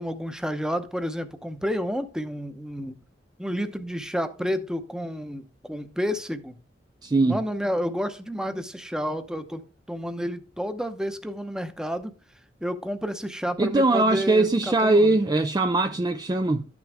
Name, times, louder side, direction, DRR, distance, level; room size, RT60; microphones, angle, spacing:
voice 1, 0.0-3.0 3.4-6.6 7.3-9.6 9.9-12.1 12.6-15.2, equal, 5° right, 0.8 m, -30 dB
voice 2, 7.0-7.4 13.6-16.7, right 2 dB, 20° right, 0.4 m, -21 dB
12.5 x 6.2 x 3.4 m
head